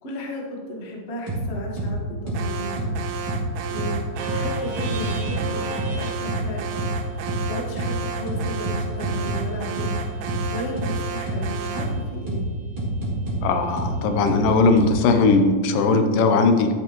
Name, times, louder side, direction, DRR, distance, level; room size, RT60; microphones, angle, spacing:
voice 1, 0.0-2.9 3.7-6.7 7.5-10.0 10.5-12.5, equal, 55° left, -1 dB, 0.7 m, -34 dB
sound 1, 1.3-1.4 1.8-1.9 2.3-2.4 2.8-2.9 3.3-3.4 3.8-3.9 4.3-4.4 4.8-5.4 5.8-5.9 6.3-6.4 6.8-6.9 7.3-7.4 7.8-7.9 8.3-9.4 9.8-9.9 10.3-10.4 10.8-10.9 11.3-11.4 11.8-11.9 12.3-12.4 12.8-13.4 13.8-13.9 14.3-14.4 14.8-14.9, right 2 dB, 15° right, 2.9 m, -27 dB
Alarm, 2.3-12.0, right 5 dB, 80° right, 2.2 m, -33 dB
sound 2, 4.2-12.0, right 2 dB, 60° right, 1.8 m, -38 dB
voice 2, 13.4-16.7, left 3 dB, 85° left, 7 dB, 2.5 m, -19 dB
12.5 x 8.3 x 3.0 m, 1.5 s
omnidirectional pair, 3.8 m